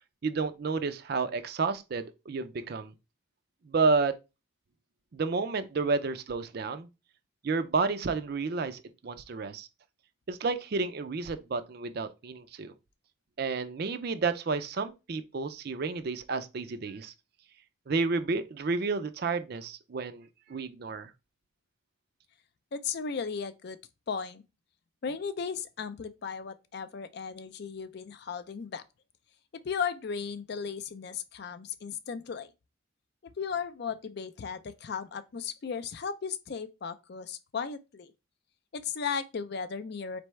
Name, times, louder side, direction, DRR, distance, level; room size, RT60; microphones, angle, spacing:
voice 1, 0.2-2.9 3.6-4.1 5.1-6.9 7.4-9.7 10.3-12.7 13.4-17.1 17.9-21.1, right 4 dB, 50° right, 0.4 m, -31 dB
voice 2, 22.7-23.8 24.1-24.4 25.0-28.8 29.6-32.5 33.4-38.1 38.7-40.2, left 6 dB, 50° left, 0.4 m, -36 dB
4.2 x 3.4 x 3.1 m
head